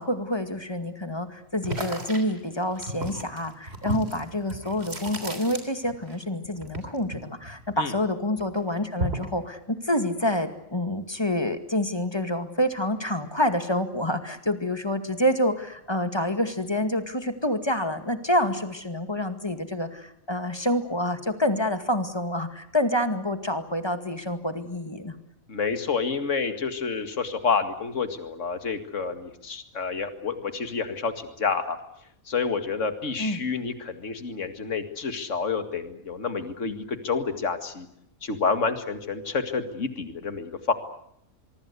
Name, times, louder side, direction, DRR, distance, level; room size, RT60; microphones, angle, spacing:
voice 1, 0.0-25.1 33.2-33.4, left 1 dB, 20° left, 8 dB, 2.2 m, -27 dB
sound 1, 1.6-6.2 6.4-8.1 8.4-9.4, right 1 dB, 45° right, 3.7 m, -34 dB
voice 2, 25.5-31.8 32.3-37.9 38.2-40.7, left 5 dB, 60° left, 8 dB, 2.4 m, -29 dB
25.0 x 23.5 x 8.2 m, 0.74 s
omnidirectional pair, 1.5 m